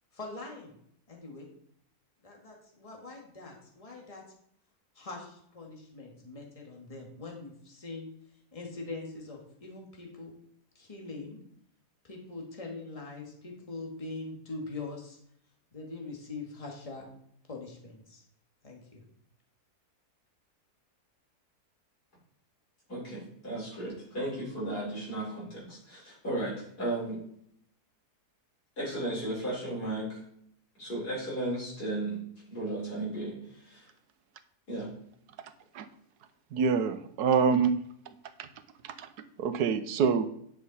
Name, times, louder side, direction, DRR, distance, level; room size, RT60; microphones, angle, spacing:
voice 1, 0.1-0.7 1.1-1.5 2.2-4.2 5.0-8.1 8.5-10.3 10.8-11.4 12.0-15.2 15.7-17.1 17.5-18.2 18.6-19.0, left 3 dB, 20° left, 0 dB, 1.9 m, -42 dB
voice 2, 22.9-27.2 28.8-30.2 30.8-32.2 32.5-33.9 34.7-34.9, right 1 dB, 75° left, -6 dB, 5.2 m, -35 dB
voice 3, 36.5-37.8 38.4-38.5 38.8-39.1 39.4-40.3, right 6 dB, 85° right, 11 dB, 1.3 m, -26 dB
10.0 x 6.4 x 4.1 m, 0.68 s
omnidirectional pair, 1.7 m